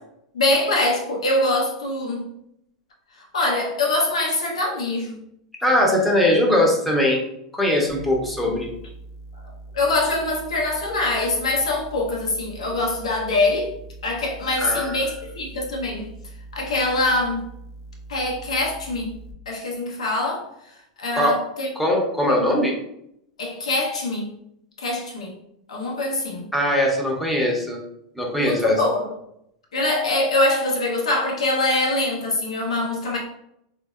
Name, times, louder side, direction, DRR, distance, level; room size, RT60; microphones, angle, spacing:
voice 1, 0.3-2.3 3.2-5.2 9.4-13.7 14.0-16.1 16.5-17.4 18.1-19.1 19.5-20.5 21.0-21.7 22.6-22.7 23.4-24.4 24.8-25.3 25.7-26.5 28.4-29.1 29.7-33.2, left 2 dB, 90° left, -1 dB, 1.0 m, -24 dB
voice 2, 5.6-7.2 7.5-8.7 14.6-15.0 21.1-21.4 21.7-22.8 26.5-27.8 28.1-28.8, left 1 dB, 5° left, -2 dB, 1.0 m, -20 dB
sound 1, 7.9-19.3, right 2 dB, 50° left, 0.7 m, -42 dB
3.7 x 2.7 x 2.4 m, 0.76 s
hypercardioid pair, 110°, 3 cm